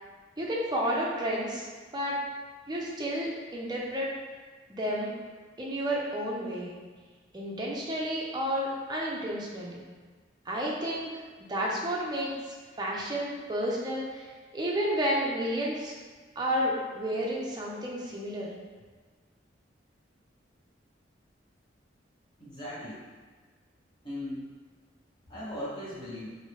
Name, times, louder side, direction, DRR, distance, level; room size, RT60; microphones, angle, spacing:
voice 1, 0.4-1.7 1.9-2.2 2.7-4.1 4.7-5.1 5.6-6.7 7.3-9.8 10.5-11.1 11.5-14.3 14.5-15.9 16.4-18.5, equal, 20° right, -4 dB, 0.5 m, -31 dB
voice 2, 22.4-23.0 24.0-24.5 25.3-26.4, left 1 dB, 25° left, -10 dB, 1.1 m, -38 dB
3.0 x 2.7 x 3.0 m, 1.4 s
head